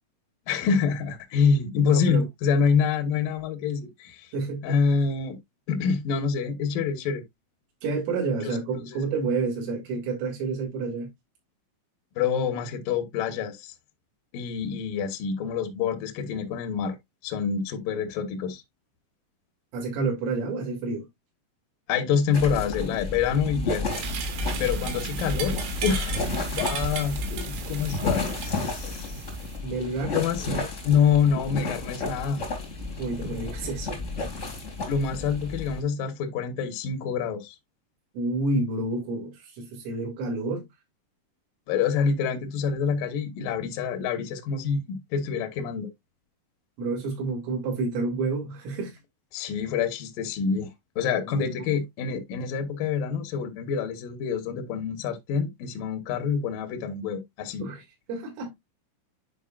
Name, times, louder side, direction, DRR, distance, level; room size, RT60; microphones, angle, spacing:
voice 1, 0.5-4.3 4.6-5.4 5.7-7.2 8.4-8.9 12.2-13.7 14.3-17.0 17.2-18.6 21.9-23.9 24.5-25.6 25.8-26.2 26.5-29.1 30.1-30.5 30.8-32.4 34.9-37.6 41.7-45.9 49.3-50.7 51.0-57.7, left 6 dB, 75° left, 2.0 m, -26 dB
voice 2, 1.9-2.2 4.3-4.8 7.8-11.1 19.7-21.1 29.6-30.7 33.0-34.1 38.2-40.7 46.8-49.0 51.4-51.5 57.6-58.5, right 3 dB, 90° right, 5.2 m, -29 dB
sound 1, 22.3-35.8, left 3 dB, 55° left, 0.8 m, -32 dB
sound 2, 23.9-29.6, right 6 dB, 75° right, 3.6 m, -35 dB
10.0 x 5.2 x 2.4 m
omnidirectional pair, 5.6 m